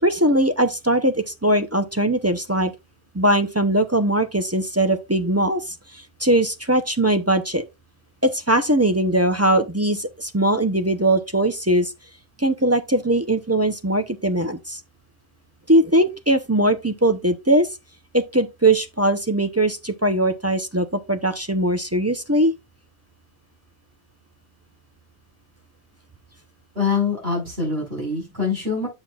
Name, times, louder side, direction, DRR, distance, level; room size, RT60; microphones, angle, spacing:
voice 1, 0.0-2.7 3.1-7.7 8.2-11.9 12.4-14.8 15.7-17.7 18.1-22.5, right 1 dB, 20° right, 0.6 m, -20 dB
voice 2, 26.8-28.9, left 4 dB, 70° right, 5.3 m, -24 dB
8.8 x 7.7 x 2.4 m
omnidirectional pair, 1.1 m